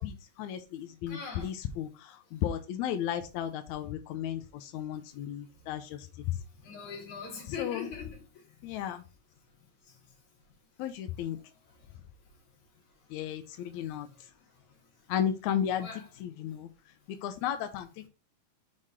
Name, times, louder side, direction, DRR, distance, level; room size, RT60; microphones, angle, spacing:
voice 1, 0.0-6.4 7.5-7.9 8.6-9.0 10.8-11.4 13.1-14.3 15.1-15.9 16.2-18.1, left 10 dB, 80° left, 1.8 m, -34 dB
voice 2, 1.1-1.5 5.5-5.7 6.5-8.6 9.9-10.0 11.8-11.9 15.8-16.0, left 6 dB, 60° left, 3.1 m, -42 dB
6.6 x 3.6 x 4.3 m
omnidirectional pair, 3.8 m